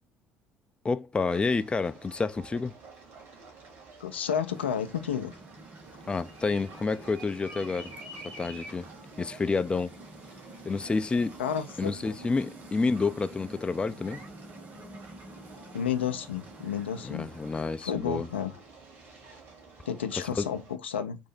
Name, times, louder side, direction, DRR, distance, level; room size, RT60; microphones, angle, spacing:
voice 1, 0.8-2.7 6.1-7.9 8.2-8.9 9.2-9.9 10.7-11.4 11.8-14.2 17.0-18.3 20.3-20.5, left 4 dB, 15° left, 0.4 m, -29 dB
sound 1, 1.3-20.7, right 4 dB, 55° right, 2.7 m, -51 dB
voice 2, 4.0-5.4 11.4-12.2 15.7-17.3 17.8-18.5 19.9-21.2, left 8 dB, 75° left, 0.5 m, -31 dB
sound 2, 4.5-17.8, right 1 dB, 30° right, 1.3 m, -49 dB
sound 3, 5.9-11.5, right 1 dB, 75° right, 2.2 m, -49 dB
4.4 x 2.7 x 4.0 m
figure-of-eight pair, 55°, 6 cm